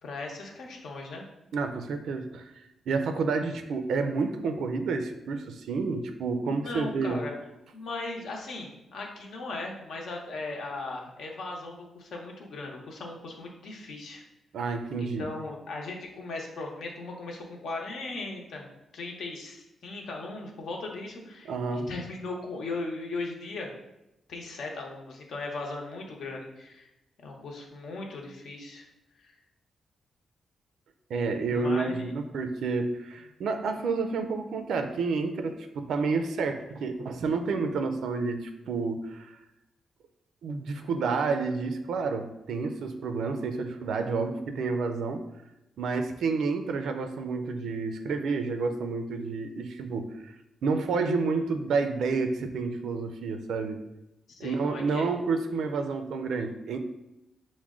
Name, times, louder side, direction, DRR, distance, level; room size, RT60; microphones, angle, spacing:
voice 1, 0.0-1.2 6.4-7.3 7.7-14.2 15.0-18.7 18.9-23.7 24.3-26.9 27.2-28.8 29.2-29.3 31.5-32.1 54.3-55.1, left 3 dB, 70° left, 0 dB, 0.8 m, -38 dB
voice 2, 1.5-2.5 2.9-7.2 14.5-15.3 21.4-21.9 31.1-39.4 40.4-45.2 45.8-50.3 50.6-53.8 54.4-56.8, right 4 dB, 90° right, 7 dB, 0.4 m, -29 dB
6.0 x 2.1 x 3.6 m, 0.89 s
wide cardioid pair, 170°, 0 cm